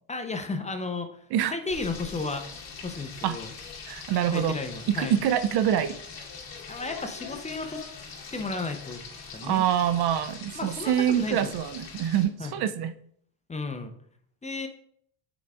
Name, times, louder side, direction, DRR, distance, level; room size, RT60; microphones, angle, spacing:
voice 1, 0.1-2.5 2.8-3.5 4.3-5.2 6.7-7.8 8.3-9.0 9.3-9.7 10.5-11.5 12.4-12.6 13.5-13.9 14.4-14.7, left 3 dB, 15° left, 6 dB, 0.6 m, -33 dB
Frying (food), 1.7-12.2, left 5 dB, 50° left, 2.1 m, -42 dB
voice 2, 3.9-4.6 4.9-5.9 9.4-12.9, right 10 dB, 55° right, 12 dB, 0.6 m, -25 dB
7.0 x 4.7 x 3.6 m, 0.65 s
cardioid pair, 110°, 47 cm